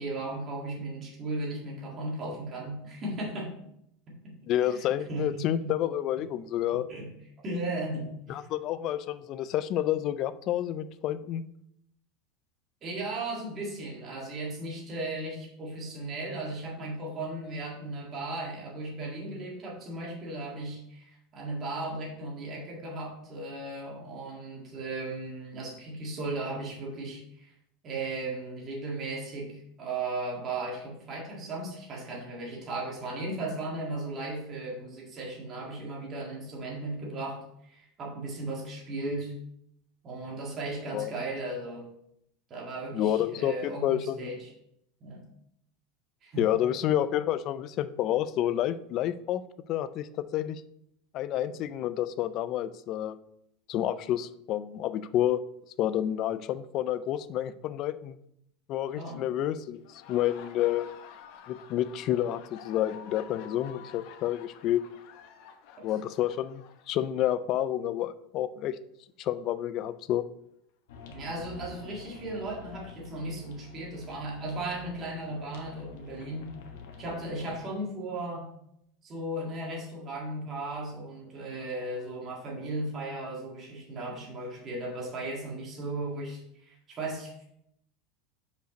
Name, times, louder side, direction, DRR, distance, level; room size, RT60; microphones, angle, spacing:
voice 1, 0.0-3.5 4.1-4.3 4.6-4.8 5.1-5.7 6.7-7.1 7.4-8.4 12.8-27.5 27.8-37.4 37.7-39.3 40.0-41.9 42.5-44.4 45.0-45.2 46.2-46.5 58.9-59.2 71.1-76.5 77.0-78.5 79.0-87.5, right 2 dB, 25° right, -2 dB, 1.9 m, -36 dB
voice 2, 4.5-6.9 8.3-11.4 40.9-41.1 42.9-44.3 46.4-49.4 49.7-50.6 51.1-53.2 53.7-55.4 55.8-58.2 58.7-60.9 61.5-64.8 65.8-68.8 69.2-70.3, left 12 dB, 40° left, 14 dB, 0.4 m, -29 dB
Laughter, 59.7-67.4, left 8 dB, 55° left, 0.7 m, -50 dB
sound 1, 70.9-77.6, left 6 dB, 80° left, 1.2 m, -48 dB
5.3 x 5.1 x 4.9 m, 0.74 s
supercardioid pair, 160°, 0 cm